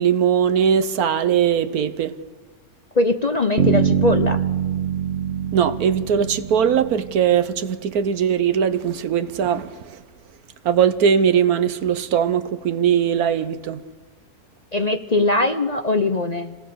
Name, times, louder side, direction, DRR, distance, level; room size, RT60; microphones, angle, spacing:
voice 1, 0.0-2.1 5.5-9.7 10.6-13.8, right 8 dB, 75° right, 1.4 m, -20 dB
voice 2, 2.9-4.4 14.7-16.6, left 2 dB, 35° left, 0.7 m, -21 dB
Bass guitar, 3.6-7.5, right 7 dB, 50° right, 1.6 m, -23 dB
27.0 x 18.5 x 6.9 m
omnidirectional pair, 1.6 m